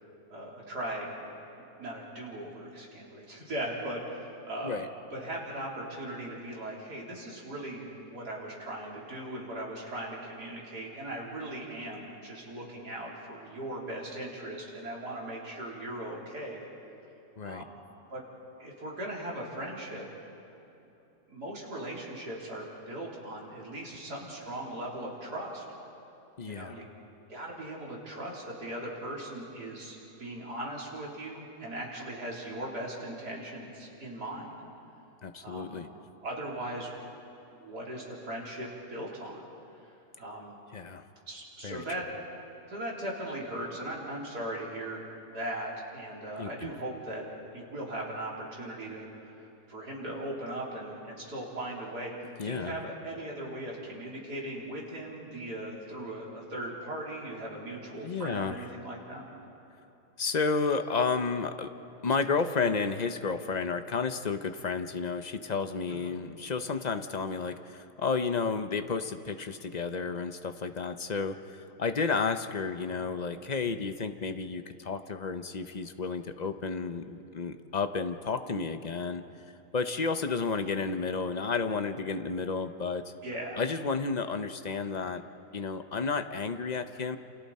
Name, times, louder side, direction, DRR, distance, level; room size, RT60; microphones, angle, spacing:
voice 1, 0.3-1.3 1.8-4.8 5.1-16.7 17.4-17.8 18.1-18.2 18.6-20.1 20.8-20.9 21.3-25.6 26.5-26.9 27.3-34.5 35.4-35.8 36.2-37.0 37.5-39.5 39.7-39.9 40.2-40.6 41.3-42.1 42.7-45.0 45.3-47.2 47.5-52.1 52.4-59.3 65.9-66.1 83.2-83.6, right 1 dB, 75° right, -4 dB, 4.3 m, -39 dB
voice 2, 26.4-26.8 35.2-35.9 40.7-41.0 41.6-41.8 46.4-46.7 52.4-52.8 58.0-58.7 60.2-61.7 62.0-79.2 79.7-83.1 83.6-85.2 85.5-87.2, left 4 dB, 40° left, 8 dB, 0.6 m, -32 dB
28.5 x 28.0 x 4.3 m, 2.9 s
omnidirectional pair, 1.7 m